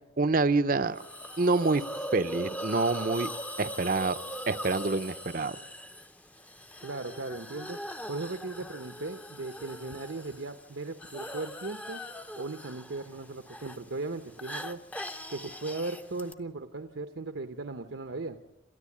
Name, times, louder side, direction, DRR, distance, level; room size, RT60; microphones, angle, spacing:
voice 1, 0.2-1.0 1.4-1.8 2.1-3.3 3.6-4.2 4.5-5.6, right 3 dB, 45° right, 13 dB, 0.7 m, -26 dB
Hiss, 0.9-16.3, equal, 5° left, 0.7 m, -41 dB
voice 2, 6.8-7.8 8.1-12.0 12.4-14.8 15.3-18.4, right 3 dB, 75° right, 7 dB, 0.9 m, -37 dB
28.5 x 13.5 x 8.5 m, 1.0 s
head